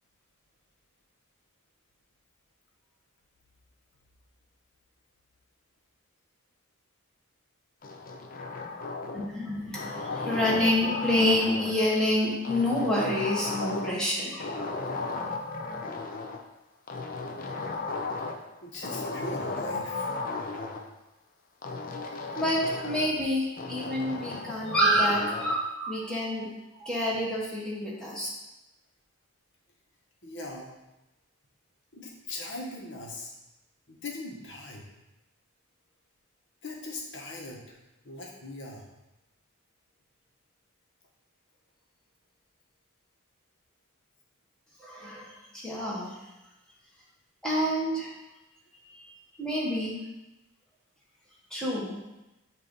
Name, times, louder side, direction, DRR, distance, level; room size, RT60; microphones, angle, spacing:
sound 1, 7.8-9.4 9.7-11.8 12.4-14.1 14.4-16.4 16.9-18.5 18.8-20.8 21.6-23.2 23.6-25.6, left 3 dB, 40° left, 0.5 m, -35 dB
voice 1, 9.1-14.9 22.3-26.5 26.8-28.3 44.8-46.2 47.4-48.1 48.9-49.1 49.4-49.9 51.5-52.0, equal, 5° left, -7 dB, 1.3 m, -28 dB
voice 2, 18.6-20.1 30.2-30.7 31.9-33.3 33.9-34.8 36.6-37.8 38.0-38.9, left 2 dB, 55° left, -1 dB, 1.2 m, -40 dB
7.6 x 2.7 x 5.3 m, 0.98 s
head